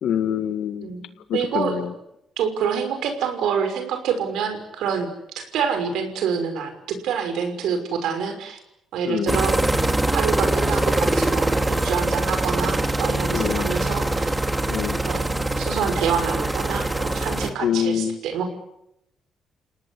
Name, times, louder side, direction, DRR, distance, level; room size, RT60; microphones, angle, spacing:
voice 1, 0.0-0.9 1.3-1.9 9.1-9.4 13.3-13.8 14.7-15.0 17.6-18.2, left 9 dB, 75° left, 11 dB, 1.9 m, -25 dB
voice 2, 0.8-1.9 2.4-5.1 5.4-8.6 8.9-9.6 10.1-11.6 11.8-14.4 15.1-18.5, right 7 dB, 85° right, 7 dB, 5.9 m, -27 dB
sound 1, 9.3-17.5, right 2 dB, 15° right, 2.9 m, -23 dB
29.5 x 18.5 x 9.8 m, 0.83 s
cardioid pair, 90°, 0 cm